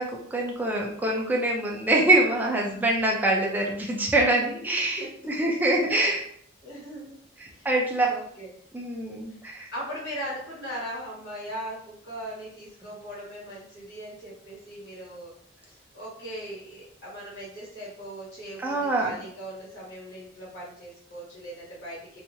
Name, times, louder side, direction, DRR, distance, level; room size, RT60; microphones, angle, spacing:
voice 1, 0.0-6.2 7.6-8.1 8.7-9.7 18.6-19.1, right 2 dB, 10° right, -2 dB, 0.4 m, -24 dB
voice 2, 4.8-5.1 5.4-5.5 6.0-6.1 6.6-7.2 7.5-8.5 9.7-15.3 15.6-22.2, equal, 55° left, -9 dB, 1.4 m, -39 dB
2.8 x 2.4 x 2.6 m, 0.64 s
head